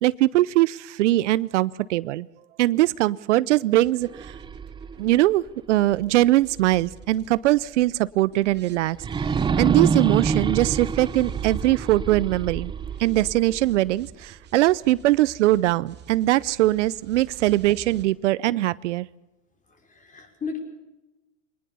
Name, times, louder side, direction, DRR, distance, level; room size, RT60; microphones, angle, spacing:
voice 1, 0.0-2.3 2.6-4.3 5.0-9.0 9.2-12.7 13.0-19.1, right 16 dB, 70° right, 20 dB, 0.7 m, -21 dB
sound 1, 3.8-7.9 8.3-18.0, right 8 dB, 30° right, 2.4 m, -49 dB
sound 2, 4.0-7.0 7.5-7.6 8.9-14.0, right 6 dB, 15° right, 0.7 m, -27 dB
voice 2, 19.7-20.6, left 5 dB, 20° left, 4 dB, 5.8 m, -35 dB
24.5 x 19.0 x 7.0 m, 1.0 s
hypercardioid pair, 120°, 37 cm